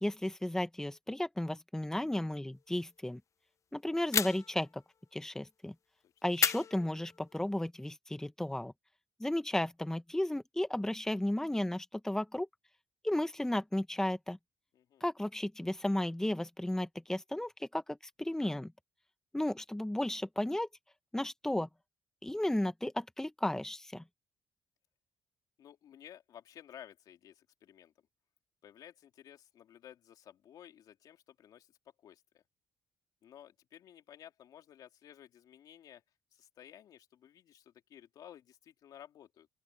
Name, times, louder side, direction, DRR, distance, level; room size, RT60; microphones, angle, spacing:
voice 1, 0.0-3.2 3.7-4.8 5.1-5.7 6.2-8.7 9.2-12.5 13.0-14.4 15.0-18.7 19.3-20.7 21.1-21.7 22.2-24.0, left 1 dB, 5° left, 1.4 m, -34 dB
sound 1, 4.1-4.7 6.4-7.4, left 7 dB, 50° left, 0.9 m, -32 dB
voice 2, 14.7-15.0 25.6-27.9 28.6-31.7 32.0-32.4 33.2-36.0 36.3-39.5, left 10 dB, 75° left, 3.0 m, -55 dB
open air
supercardioid pair, 70°, 7 cm